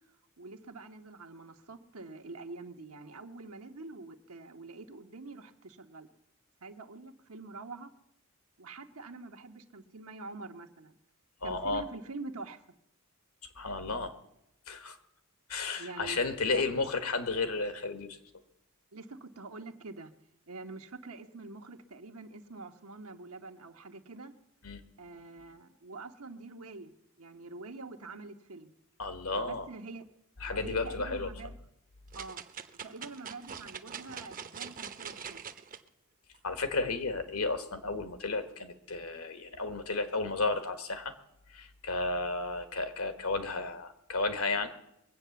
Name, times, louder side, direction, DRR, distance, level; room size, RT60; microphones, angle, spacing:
voice 1, 0.4-6.1 6.6-7.9 8.6-11.0 11.4-12.6 15.8-16.2 16.5-16.6 18.9-20.1 20.5-24.3 25.0-26.9 27.2-28.7 29.3-30.0 30.5-31.5 32.1-32.4 32.8-35.4, right 3 dB, 80° right, 6 dB, 1.2 m, -45 dB
voice 2, 11.4-11.8 13.4-14.2 14.7-15.0 15.5-18.2 24.6-24.8 29.0-29.7 30.4-31.3 36.4-41.1 41.5-44.7, left 3 dB, 80° left, 9 dB, 1.5 m, -33 dB
sound 1, 32.1-35.8 36.3-36.4, right 7 dB, 40° right, 0.8 m, -43 dB
22.0 x 8.5 x 7.0 m, 0.82 s
head